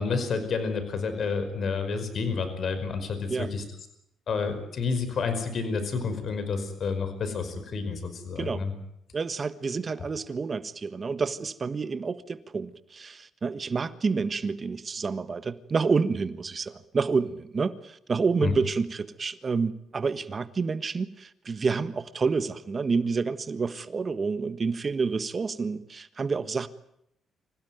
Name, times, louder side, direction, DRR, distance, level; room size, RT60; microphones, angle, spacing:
voice 1, 0.0-3.6 4.3-8.7 10.0-10.1 18.4-18.5, left 5 dB, 55° left, 5.3 m, -29 dB
voice 2, 9.1-26.7, right 4 dB, 35° right, 1.4 m, -29 dB
26.0 x 16.5 x 9.4 m
cardioid pair, 90°, 0 cm